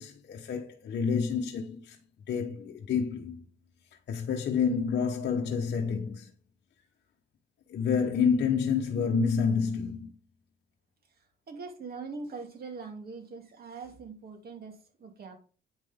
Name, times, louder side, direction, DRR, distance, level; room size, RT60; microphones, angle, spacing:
voice 1, 0.0-2.0 2.3-3.4 4.1-6.3 7.7-10.1, left 6 dB, 60° left, 0.9 m, -28 dB
voice 2, 11.2-15.4, right 4 dB, 50° right, 2.5 m, -42 dB
8.7 x 5.8 x 3.6 m
cardioid pair, 90°, 20 cm